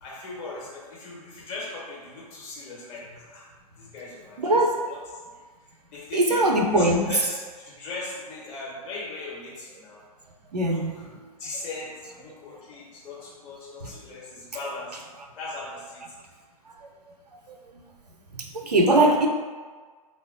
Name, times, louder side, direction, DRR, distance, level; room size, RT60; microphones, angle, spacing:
voice 1, 0.0-3.5 3.8-4.6 4.9-5.0 5.9-6.4 6.7-10.0 10.5-11.1 11.4-15.0 15.4-16.0 18.9-19.2, left 3 dB, 35° left, -6 dB, 1.0 m, -39 dB
voice 2, 4.4-4.9 6.1-7.1 10.5-11.1 18.3-19.3, right 1 dB, 85° right, 2 dB, 0.4 m, -21 dB
3.1 x 2.1 x 2.6 m, 1.5 s
figure-of-eight pair, 105°, 20 cm